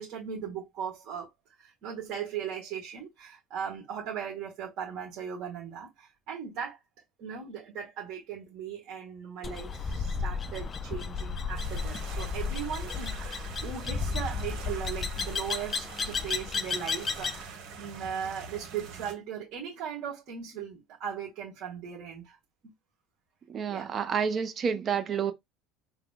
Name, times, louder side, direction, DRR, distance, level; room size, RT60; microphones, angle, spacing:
voice 1, 0.0-1.3 1.6-6.8 7.2-22.4 22.6-22.7 23.7-23.9, right 8 dB, 50° right, 1.7 m, -38 dB
sound 1, 9.4-17.4, left 5 dB, 25° left, 0.4 m, -33 dB
sound 2, 11.6-19.1, right 5 dB, 65° right, 1.5 m, -45 dB
voice 2, 23.5-25.3, right 7 dB, 30° right, 0.6 m, -29 dB
3.7 x 2.2 x 3.7 m
cardioid pair, 150°, 0 cm